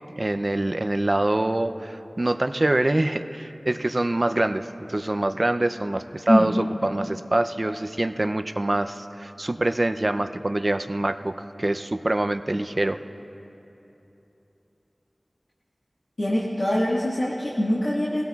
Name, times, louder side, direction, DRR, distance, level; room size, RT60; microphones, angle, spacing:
voice 1, 0.2-13.0, right 1 dB, 45° right, 9 dB, 0.5 m, -25 dB
voice 2, 16.2-18.2, equal, 60° left, -8 dB, 1.8 m, -23 dB
23.0 x 16.5 x 2.4 m, 3.0 s
wide cardioid pair, 50°, 0 cm